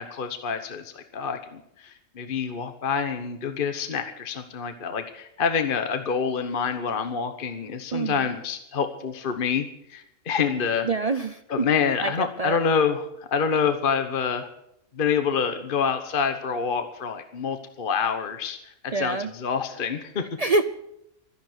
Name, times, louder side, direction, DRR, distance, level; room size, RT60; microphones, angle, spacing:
voice 1, 0.0-10.9 11.5-14.5 14.9-20.3, left 6 dB, 40° left, 8 dB, 1.2 m, -27 dB
voice 2, 7.9-8.3 10.8-11.7 12.0-12.6 18.9-19.3 20.4-20.6, right 3 dB, 50° right, 10 dB, 0.4 m, -26 dB
13.5 x 10.5 x 8.1 m, 0.77 s
omnidirectional pair, 1.4 m